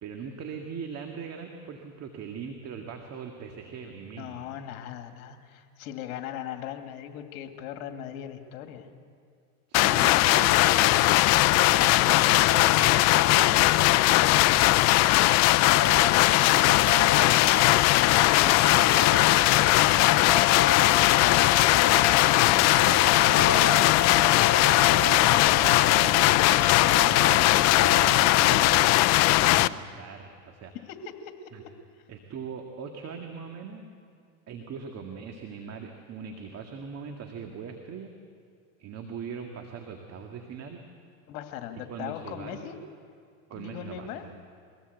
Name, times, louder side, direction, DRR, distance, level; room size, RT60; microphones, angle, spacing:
voice 1, 0.0-4.4 9.7-11.1 11.5-15.3 18.4-18.8 22.2-22.8 23.2-23.8 24.9-28.7 29.2-30.7 31.5-31.6 32.1-33.9 34.5-38.1 38.8-40.8 41.9-42.7 43.5-44.4, right 6 dB, 35° right, 3 dB, 2.0 m, -41 dB
voice 2, 4.2-8.9 14.3-14.7 16.4-19.1 19.3-21.5 23.0-24.2 30.7-31.7 41.3-42.8 43.5-44.2, left 9 dB, 65° left, 5 dB, 2.4 m, -39 dB
sound 1, 9.7-29.7, left 18 dB, 40° left, 0.5 m, -20 dB
sound 2, 15.4-28.8, left 3 dB, 15° left, 7.9 m, -33 dB
23.0 x 17.0 x 8.2 m, 2.3 s
supercardioid pair, 110°, 42 cm